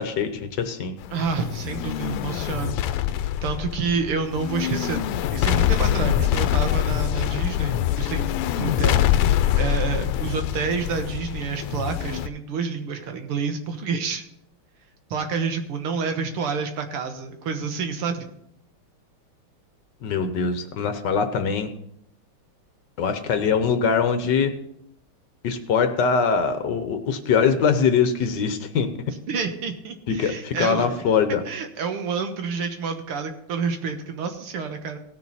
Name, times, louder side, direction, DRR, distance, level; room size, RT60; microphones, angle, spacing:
voice 1, 0.0-1.0 20.0-21.7 23.0-24.5 25.4-28.9 30.1-31.4, left 6 dB, 60° left, 8 dB, 1.4 m, -22 dB
sound 1, 1.0-12.3, left 11 dB, 85° left, 1.5 m, -24 dB
voice 2, 1.1-2.8 3.4-14.2 15.1-18.3 29.3-30.9 31.5-35.0, right 5 dB, 85° right, 6 dB, 2.1 m, -29 dB
17.5 x 6.7 x 4.1 m, 0.74 s
omnidirectional pair, 2.4 m